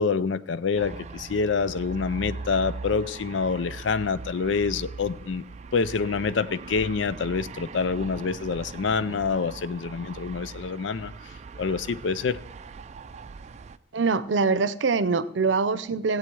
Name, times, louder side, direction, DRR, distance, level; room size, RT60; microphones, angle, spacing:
voice 1, 0.0-5.4 5.7-11.1 11.6-12.4, left 5 dB, 80° left, 0.5 m, -26 dB
sound 1, 0.7-13.8, right 4 dB, 40° right, 0.4 m, -40 dB
voice 2, 13.9-16.2, right 4 dB, 75° right, 0.6 m, -24 dB
17.0 x 8.0 x 4.7 m
head